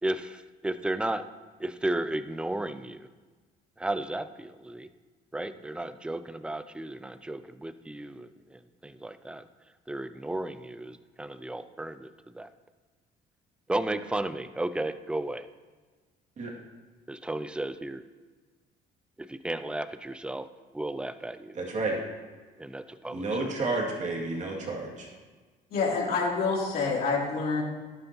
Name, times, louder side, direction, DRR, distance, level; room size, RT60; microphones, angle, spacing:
voice 1, 0.0-1.2 1.6-3.1 3.8-4.9 5.3-9.4 9.9-12.5 13.7-15.5 17.1-18.0 19.2-20.5 20.7-21.6 22.6-23.5, right 1 dB, 5° right, 11 dB, 0.5 m, -34 dB
voice 2, 23.1-25.1, right 2 dB, 45° right, -2 dB, 2.5 m, -30 dB
voice 3, 25.7-27.6, left 4 dB, 60° left, -4 dB, 3.2 m, -27 dB
11.5 x 9.0 x 3.0 m, 1.4 s
cardioid pair, 110°, 17 cm